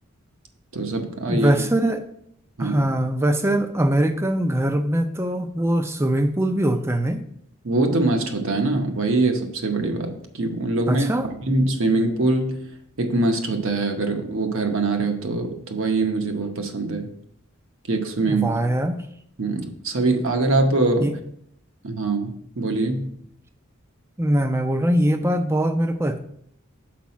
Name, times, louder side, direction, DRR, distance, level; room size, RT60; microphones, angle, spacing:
voice 1, 0.7-1.5 2.6-2.8 7.6-12.6 13.0-17.1 17.9-18.5 19.4-21.1 21.8-23.1, right 2 dB, 65° right, 4 dB, 0.8 m, -23 dB
voice 2, 1.3-2.1 2.6-7.3 10.9-11.3 18.3-19.0 21.0-21.1 24.2-26.2, right 1 dB, 10° right, 8 dB, 0.4 m, -22 dB
6.0 x 4.7 x 4.1 m, 0.70 s
head